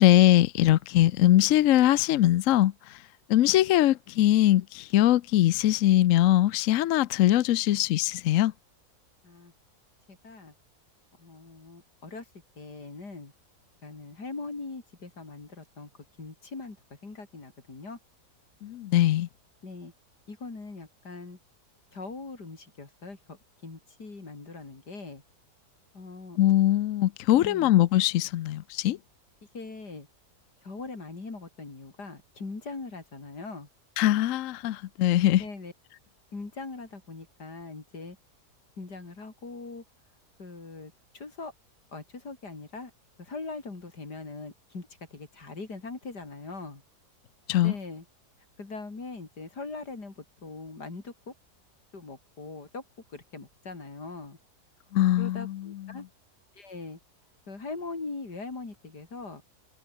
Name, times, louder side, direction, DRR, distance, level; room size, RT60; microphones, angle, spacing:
voice 1, 0.0-2.7 3.3-8.5 18.6-19.3 26.4-29.0 34.0-35.4 47.5-47.7 54.9-55.7, left 13 dB, 65° left, 0.9 m, -22 dB
voice 2, 10.1-10.5 11.2-12.2 12.6-13.3 13.8-15.9 16.2-16.8 17.0-18.0 19.6-19.9 20.3-21.4 21.9-25.2 25.9-26.4 27.3-27.7 29.5-30.1 30.6-33.7 35.4-35.7 36.3-38.2 38.8-39.8 40.4-41.5 41.9-42.9 43.2-46.8 47.6-48.0 48.6-51.3 51.9-52.8 53.1-54.4 55.2-56.0 56.5-57.0 57.5-59.4, left 3 dB, 85° left, 4.8 m, -41 dB
omnidirectional pair, 1.7 m